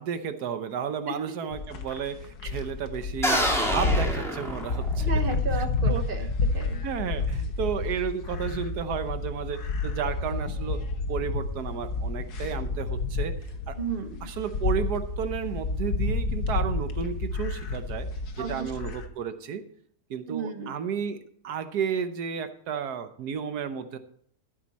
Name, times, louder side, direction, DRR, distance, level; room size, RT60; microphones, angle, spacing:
voice 1, 0.0-5.1 5.5-6.1 6.8-10.8 11.1-13.3 13.7-13.8 14.2-18.1 18.4-19.6 20.1-21.2 21.4-24.0, right 7 dB, 80° right, 10 dB, 1.4 m, -32 dB
sound 1, 1.5-19.1, left 3 dB, 80° left, 1.6 m, -30 dB
sound 2, 3.2-5.2, equal, ahead, 2.1 m, -27 dB
voice 2, 5.0-6.8 13.8-14.3 18.4-18.7 20.3-20.7, right 4 dB, 40° right, 7 dB, 1.1 m, -34 dB
13.5 x 8.0 x 4.2 m, 0.64 s
omnidirectional pair, 1.7 m